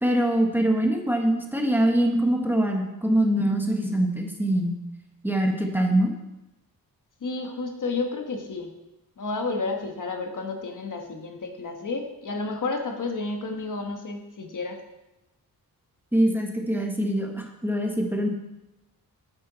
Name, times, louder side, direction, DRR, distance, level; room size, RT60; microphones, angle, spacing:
voice 1, 0.0-4.8 5.2-6.1 16.1-18.3, right 1 dB, 5° right, 1 dB, 1.2 m, -23 dB
voice 2, 7.2-8.7 9.2-14.8, left 3 dB, 55° left, 3 dB, 1.3 m, -31 dB
8.8 x 8.7 x 4.0 m, 0.95 s
wide cardioid pair, 130°, 37 cm